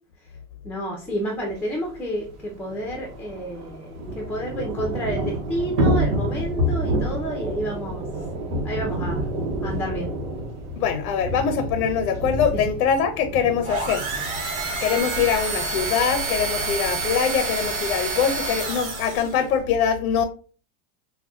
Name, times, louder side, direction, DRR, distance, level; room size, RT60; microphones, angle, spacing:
voice 1, 0.6-8.0 8.6-9.2 9.6-10.1 12.5-12.6, right 1 dB, 5° left, 0 dB, 0.6 m, -30 dB
Thunder / Rain, 1.5-1.6 1.8-1.9 2.2-18.1, equal, 80° right, 1.0 m, -29 dB
voice 2, 10.8-14.1 14.8-20.2, left 7 dB, 90° left, 7 dB, 0.7 m, -23 dB
sound 1, 13.6-19.4, right 3 dB, 55° right, 1.6 m, -28 dB
5.2 x 2.3 x 2.4 m, 0.40 s
supercardioid pair, 125°, 43 cm